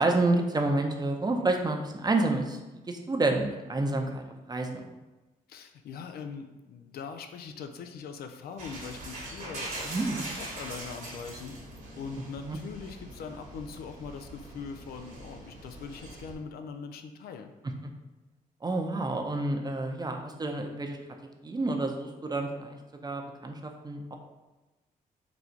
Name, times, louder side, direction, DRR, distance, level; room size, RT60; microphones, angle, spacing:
voice 1, 0.0-2.6 2.9-4.2 4.5-4.8 9.9-10.2 12.4-12.6 18.6-21.0 21.4-24.2, right 2 dB, 25° right, 3 dB, 0.6 m, -29 dB
voice 2, 5.5-11.5 12.0-17.5, left 6 dB, 80° left, 7 dB, 0.4 m, -42 dB
sound 1, 8.6-16.3, right 2 dB, 50° right, 1.2 m, -42 dB
3.9 x 2.3 x 4.4 m, 1.1 s
cardioid pair, 65°, 16 cm